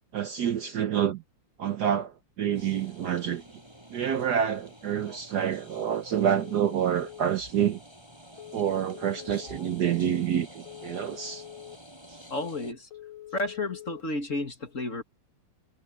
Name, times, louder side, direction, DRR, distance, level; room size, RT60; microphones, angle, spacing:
voice 1, 0.1-1.2 1.6-3.4 3.9-7.8 8.5-11.4 12.1-12.2, right 9 dB, 60° right, 1.2 m, -28 dB
sound 1, 2.5-12.7, equal, 10° right, 6.1 m, -49 dB
Telephone, 6.1-7.2 8.4-9.5 10.7-11.8 12.9-14.0, left 13 dB, 80° left, 3.6 m, -45 dB
voice 2, 12.3-12.9 13.3-15.0, left 2 dB, 40° left, 2.1 m, -32 dB
omnidirectional pair, 2.3 m